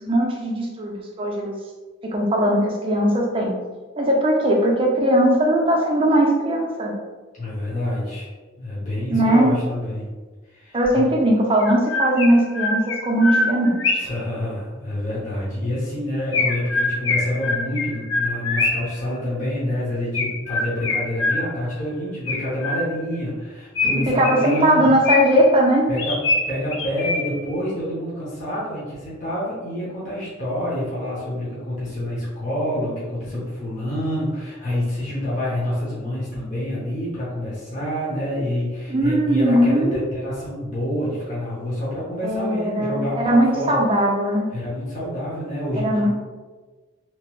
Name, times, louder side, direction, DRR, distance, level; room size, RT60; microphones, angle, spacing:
voice 1, 0.0-1.6 2.0-3.5 4.0-6.9 9.1-9.5 10.7-14.0 24.0-25.9 38.9-40.0 42.2-44.5 45.7-46.1, right 1 dB, 25° right, -1 dB, 0.4 m, -19 dB
voice 2, 7.4-8.3 8.6-10.1 10.5-11.0 14.0-24.9 25.9-26.2 26.5-43.8 44.5-46.1, left 1 dB, 35° left, -8 dB, 0.7 m, -27 dB
Chirp tweet, 10.8-10.9 11.6-14.2 16.3-19.0 20.1-21.7 22.3-23.1 23.7-25.5 26.0-27.5, left 3 dB, 75° left, 0.5 m, -24 dB
2.9 x 2.0 x 2.9 m, 1.3 s
head